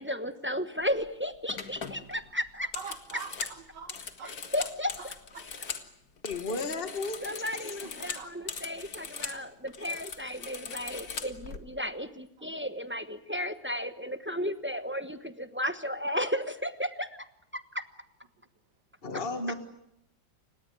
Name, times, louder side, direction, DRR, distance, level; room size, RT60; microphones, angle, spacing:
voice 1, 0.0-2.7 4.5-5.1 6.7-6.8 7.2-17.2 17.5-17.9, equal, 10° right, 0.8 m, -34 dB
sound 1, 0.9-1.1 1.5-5.9 6.2-9.4 9.7-11.6, left 6 dB, 55° left, 2.1 m, -40 dB
voice 2, 2.6-4.4 5.0-5.1 5.3-5.5 7.8-8.5 12.4-12.5, right 6 dB, 70° right, 2.1 m, -45 dB
voice 3, 6.2-7.5 7.8-8.1 19.0-19.5, left 3 dB, 30° left, 2.1 m, -34 dB
29.5 x 17.5 x 9.3 m
omnidirectional pair, 2.0 m